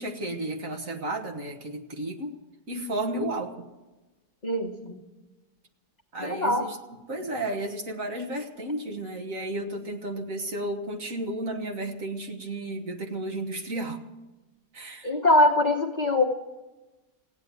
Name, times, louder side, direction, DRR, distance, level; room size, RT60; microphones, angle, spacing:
voice 1, 0.0-2.4 2.7-3.5 6.1-6.8 7.1-14.0 14.7-15.2, right 1 dB, 50° right, 4 dB, 1.8 m, -33 dB
voice 2, 4.4-4.9 6.2-6.7 15.0-16.2, left 1 dB, 25° left, 1 dB, 1.2 m, -22 dB
16.0 x 9.5 x 9.4 m, 1.1 s
omnidirectional pair, 1.8 m